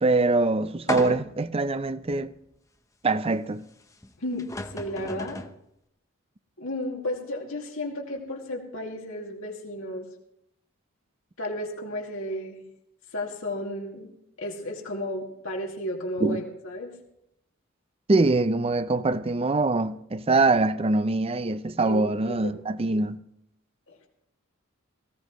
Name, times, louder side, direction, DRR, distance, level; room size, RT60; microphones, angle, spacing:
voice 1, 0.0-2.3 3.0-3.6 16.2-16.4 18.1-23.2, right 3 dB, 30° right, 0.5 m, -23 dB
sound 1, 0.9-1.5 2.1-2.2 4.0-4.1 4.4-5.6, left 2 dB, 15° left, 0.7 m, -34 dB
voice 2, 4.7-5.4 6.6-10.1 11.4-12.6 13.1-14.1 14.4-16.9 21.8-22.6 23.9-24.1, left 1 dB, 80° left, 2.5 m, -33 dB
19.0 x 16.0 x 3.1 m
head